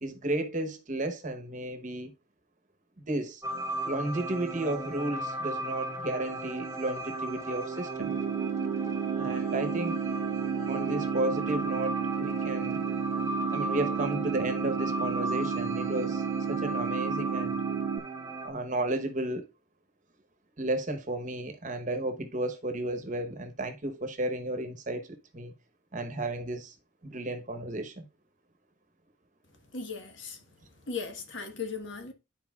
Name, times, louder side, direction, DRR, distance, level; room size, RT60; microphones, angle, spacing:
voice 1, 0.0-2.1 3.0-3.4 3.8-8.1 9.2-9.9 10.7-12.8 13.5-16.2 16.5-17.6 18.4-19.5 20.6-25.5 25.9-26.7 27.0-28.0, right 1 dB, 40° right, 1.0 m, -33 dB
sound 1, 3.4-18.5, right 2 dB, 15° right, 0.8 m, -36 dB
sound 2, 8.0-18.0, right 7 dB, 75° right, 0.5 m, -32 dB
voice 2, 29.7-30.4 30.9-32.1, left 5 dB, 60° left, 1.3 m, -37 dB
11.5 x 4.4 x 2.3 m
head